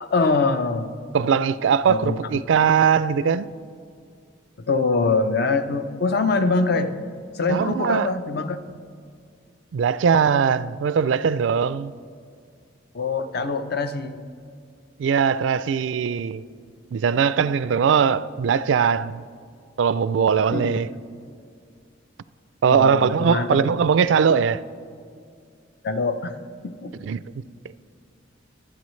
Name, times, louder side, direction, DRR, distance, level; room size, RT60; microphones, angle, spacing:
voice 1, 0.0-0.9 1.9-2.2 4.7-6.9 7.3-8.6 12.9-14.2 20.5-20.8 22.7-23.6 25.8-26.4 26.6-26.9, left 3 dB, 55° left, 0.6 m, -23 dB
voice 2, 1.1-3.5 7.5-8.1 9.7-11.9 15.0-16.4 16.9-19.2 19.8-20.9 22.6-24.6 27.0-27.2, right 6 dB, 70° right, 0.3 m, -20 dB
23.5 x 8.8 x 3.2 m
head